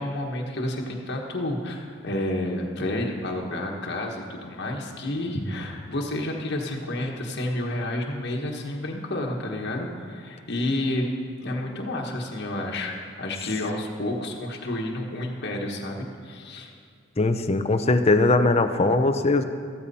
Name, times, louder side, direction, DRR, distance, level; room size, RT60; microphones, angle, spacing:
voice 1, 0.0-11.1 11.4-12.9 13.2-16.7, left 1 dB, 55° left, 0 dB, 1.4 m, -30 dB
voice 2, 17.2-19.4, left 2 dB, 30° left, 9 dB, 0.7 m, -20 dB
14.0 x 14.0 x 4.2 m, 2.3 s
head